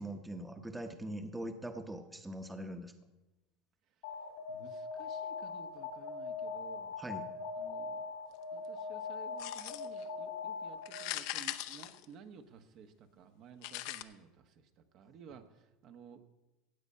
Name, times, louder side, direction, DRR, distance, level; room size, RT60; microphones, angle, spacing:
voice 1, 0.0-2.9 7.0-7.3, right 1 dB, 5° right, 7 dB, 1.0 m, -42 dB
Alarm, 4.0-11.1, left 4 dB, 85° left, 2.4 m, -41 dB
voice 2, 4.5-7.0 7.6-8.0 8.5-16.2, right 6 dB, 50° right, 8 dB, 1.2 m, -55 dB
sound 1, 9.4-10.0 10.8-12.6 13.6-14.0, left 16 dB, 65° left, 0.7 m, -40 dB
16.0 x 8.2 x 5.5 m, 1.0 s
supercardioid pair, 125°, 0 cm